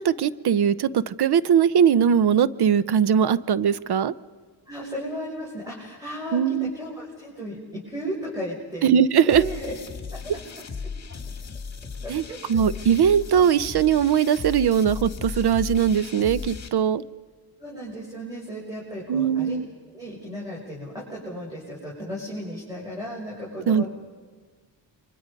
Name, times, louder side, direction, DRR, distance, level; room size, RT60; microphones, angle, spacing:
voice 1, 0.0-4.1 6.3-6.7 8.8-9.4 12.1-12.2 12.5-17.0 19.1-19.7 23.7-23.9, right 8 dB, 60° right, 17 dB, 0.8 m, -20 dB
voice 2, 4.7-8.9 9.2-9.8 10.1-10.4 12.0-12.4 17.6-19.5 19.9-23.9, equal, 10° right, -5 dB, 6.8 m, -35 dB
sound 1, 9.3-16.7, left 5 dB, 35° left, 2.3 m, -36 dB
29.5 x 24.5 x 5.3 m, 1.5 s
cardioid pair, 90°, 45 cm